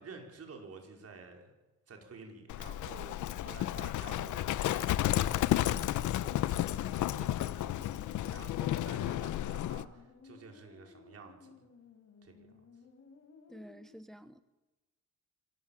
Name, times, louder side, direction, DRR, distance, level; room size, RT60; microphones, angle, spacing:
voice 1, 0.0-1.5 1.9-11.7 12.2-12.3, right 4 dB, 50° right, 3 dB, 5.1 m, -51 dB
Livestock farm animals working animals, 2.5-9.9, left 13 dB, 80° left, 0.9 m, -32 dB
sound 1, 5.4-13.9, left 4 dB, 55° left, 4.3 m, -58 dB
voice 2, 13.5-14.4, equal, ahead, 12 dB, 0.9 m, -50 dB
25.5 x 16.0 x 7.4 m, 1.1 s
cardioid pair, 90°, 30 cm